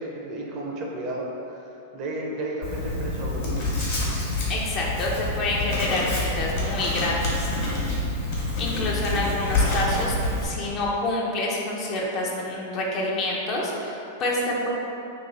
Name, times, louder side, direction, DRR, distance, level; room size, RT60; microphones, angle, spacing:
voice 1, 0.0-3.6, right 1 dB, 45° right, -2 dB, 0.6 m, -33 dB
Writing, 2.6-10.5, left 2 dB, 55° left, 1.2 m, -27 dB
voice 2, 4.5-7.5 8.6-10.2 10.4-14.7, left 2 dB, 40° left, -3 dB, 0.7 m, -27 dB
2.9 x 2.6 x 3.8 m, 2.8 s
hypercardioid pair, 105°, 0 cm